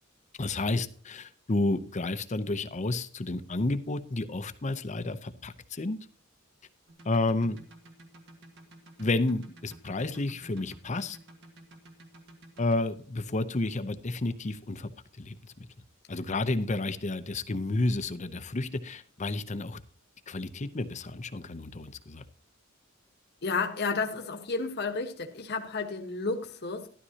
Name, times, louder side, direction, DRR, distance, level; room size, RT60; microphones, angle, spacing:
voice 1, 0.4-6.0 7.0-7.6 9.0-11.2 12.6-14.9 15.2-15.7 16.1-19.8 20.3-22.2, left 2 dB, 35° left, 0.7 m, -31 dB
sound 1, 6.9-12.8, right 1 dB, 60° right, 1.8 m, -52 dB
voice 2, 23.4-26.9, left 4 dB, 50° left, 1.2 m, -31 dB
13.0 x 12.0 x 2.8 m
head